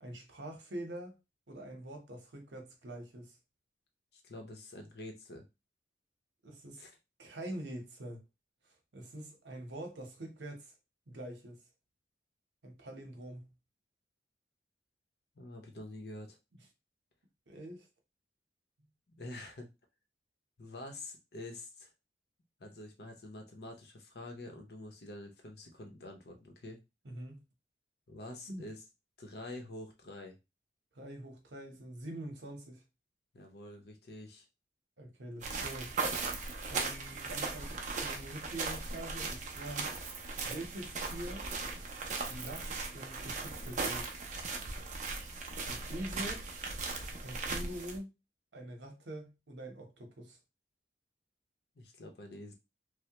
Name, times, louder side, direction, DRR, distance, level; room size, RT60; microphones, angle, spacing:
voice 1, 0.0-1.1 1.5-3.4 6.4-6.8 7.2-8.2 8.9-10.7 11.1-11.6 12.6-13.5 17.5-17.9 27.0-27.4 28.5-28.7 30.9-32.8 35.0-36.0 36.7-39.9 40.4-41.5 42.3-44.1 45.7-46.4 47.2-48.1 48.5-50.4, right 1 dB, 75° right, 0.9 m, -44 dB
voice 2, 4.1-5.5 6.8-6.9 15.4-16.4 19.2-19.7 20.6-21.9 22.6-26.8 28.1-28.8 29.2-30.4 33.3-34.4 51.8-52.5, left 1 dB, 60° left, 0.7 m, -47 dB
sound 1, 35.4-48.0, right 3 dB, 40° right, 0.5 m, -38 dB
3.2 x 2.1 x 2.9 m
head